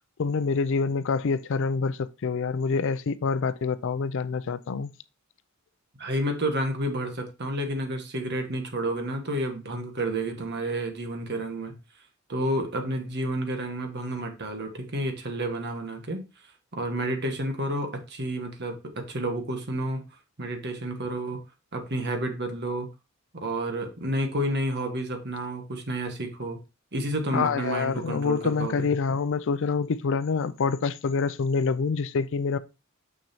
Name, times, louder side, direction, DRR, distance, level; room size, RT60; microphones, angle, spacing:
voice 1, 0.2-4.9 27.3-32.6, left 5 dB, 60° left, 0.4 m, -26 dB
voice 2, 6.0-11.7 12.3-16.2 16.7-20.0 20.4-21.4 21.7-22.9 23.3-26.6 26.9-28.9, right 1 dB, 50° right, 1.4 m, -30 dB
6.5 x 6.1 x 2.8 m
head